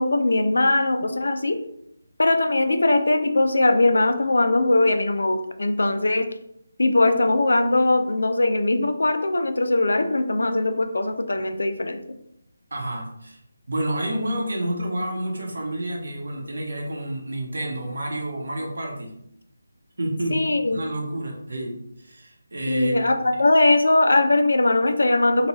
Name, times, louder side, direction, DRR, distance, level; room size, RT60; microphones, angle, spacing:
voice 1, 0.0-1.6 2.2-6.3 6.8-12.0 20.3-20.8 22.7-25.5, left 2 dB, 90° left, 8 dB, 0.4 m, -20 dB
voice 2, 12.7-13.4 13.7-19.1 20.0-20.4 20.7-23.1, right 1 dB, 70° right, 0 dB, 0.9 m, -29 dB
2.9 x 2.3 x 2.9 m, 0.76 s
figure-of-eight pair, 180°, 0 cm